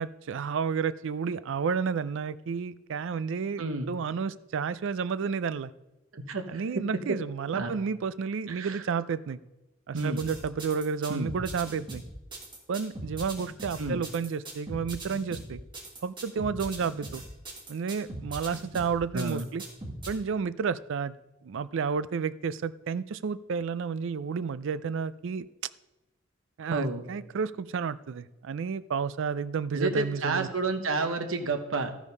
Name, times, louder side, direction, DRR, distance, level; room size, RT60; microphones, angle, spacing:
voice 1, 0.0-5.7 6.5-9.4 9.9-12.0 12.7-15.6 16.0-17.2 17.7-19.6 20.1-21.1 21.4-25.5 26.6-30.5, right 6 dB, 65° right, 16 dB, 0.4 m, -31 dB
voice 2, 3.6-3.9 6.1-7.2 7.5-7.7 8.5-8.8 9.9-10.2 11.1-11.3 13.8-14.0 19.1-19.5 26.7-27.1 29.7-32.0, right 3 dB, 80° right, 7 dB, 1.0 m, -31 dB
sound 1, 9.9-20.1, right 1 dB, 25° right, 1.8 m, -40 dB
13.0 x 5.1 x 5.4 m, 1.0 s
head